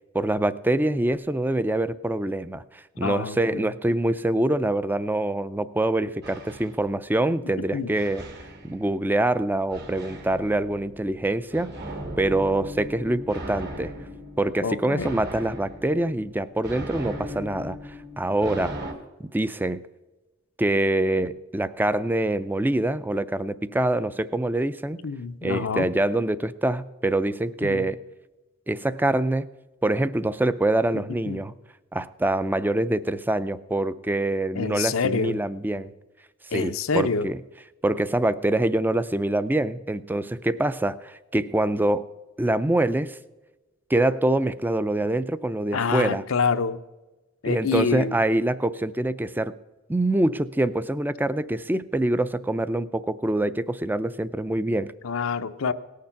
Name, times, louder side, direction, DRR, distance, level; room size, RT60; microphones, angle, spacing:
voice 1, 0.1-8.2 8.6-11.7 12.2-13.9 14.4-17.8 18.2-18.7 19.2-19.8 20.6-25.1 25.4-28.0 28.7-29.5 29.8-31.5 31.9-35.9 36.5-37.4 37.8-42.0 42.4-43.2 43.9-46.2 47.5-49.5 49.9-54.9, right 1 dB, 10° right, 15 dB, 0.4 m, -25 dB
voice 2, 3.0-3.7 7.7-8.0 14.6-15.2 25.0-25.9 27.6-27.9 31.3-31.4 34.5-35.4 36.5-37.3 45.7-46.8 47.4-48.2 55.0-55.7, left 5 dB, 85° left, 10 dB, 0.6 m, -27 dB
sound 1, 6.2-7.4 7.9-9.2 9.7-18.9, equal, 55° right, 1.7 m, -38 dB
18.0 x 6.7 x 5.7 m, 1.1 s
head